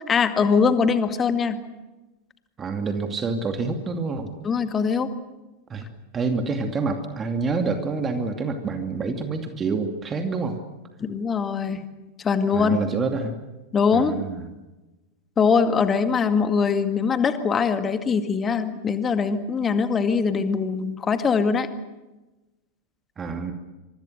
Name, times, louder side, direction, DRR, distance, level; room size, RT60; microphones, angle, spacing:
voice 1, 0.1-1.6 4.4-5.1 11.0-11.8 12.2-12.8 13.7-14.2 15.4-21.7, left 5 dB, 20° left, 9 dB, 2.1 m, -22 dB
voice 2, 2.6-4.3 5.7-5.9 6.1-10.6 12.5-13.4 13.9-14.4 23.2-23.5, right 4 dB, 20° right, 5 dB, 2.5 m, -27 dB
26.0 x 24.5 x 6.6 m, 1.1 s
figure-of-eight pair, 90°, 0 cm